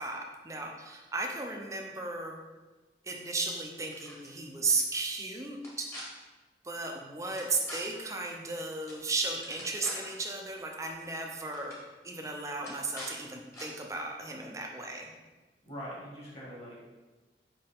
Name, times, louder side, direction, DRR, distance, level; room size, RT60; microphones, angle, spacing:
voice 1, 0.0-2.4 3.0-5.9 6.6-11.8 12.0-15.1, right 3 dB, 15° right, 1 dB, 0.6 m, -35 dB
sound 1, 3.9-4.3 4.7-4.8 5.6-6.0 7.4-7.8 8.9-9.0 9.3-10.1 11.1-11.2 11.5-11.8 12.6-13.1 13.5-13.7, equal, 15° left, 1.3 m, -44 dB
voice 2, 15.7-16.9, equal, 35° left, -6 dB, 2.0 m, -43 dB
5.5 x 4.9 x 3.5 m, 1.2 s
head